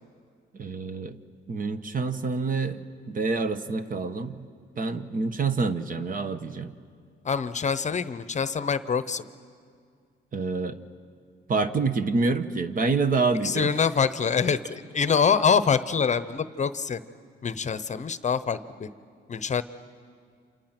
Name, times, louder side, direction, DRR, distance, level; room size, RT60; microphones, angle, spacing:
voice 1, 0.5-1.2 1.5-4.5 4.8-6.7 10.3-10.8 11.5-13.7, right 4 dB, 45° right, 10 dB, 1.2 m, -27 dB
voice 2, 7.2-9.3 13.4-17.0 17.4-18.9 19.3-19.6, left 6 dB, 35° left, 14 dB, 0.8 m, -25 dB
29.5 x 27.5 x 6.0 m, 2.2 s
cardioid pair, 90°, 20 cm